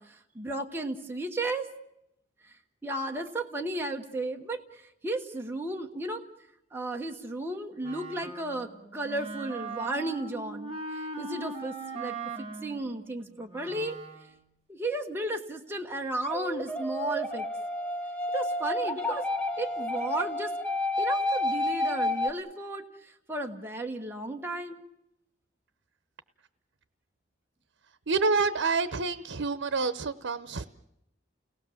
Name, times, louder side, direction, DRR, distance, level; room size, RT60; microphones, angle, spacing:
voice 1, 0.0-1.7 2.8-6.2 6.7-14.0 14.7-17.5 18.3-19.2 19.6-20.5 21.0-24.9, right 2 dB, 10° right, 2 dB, 1.2 m, -34 dB
Wind instrument woodwind instrument, 7.8-14.4, right 3 dB, 30° right, 2.1 m, -40 dB
sound 1, 16.2-22.3, left 1 dB, 5° left, 1.0 m, -30 dB
voice 2, 28.1-30.7, right 4 dB, 85° right, 14 dB, 0.8 m, -28 dB
29.5 x 19.0 x 7.2 m, 0.84 s
head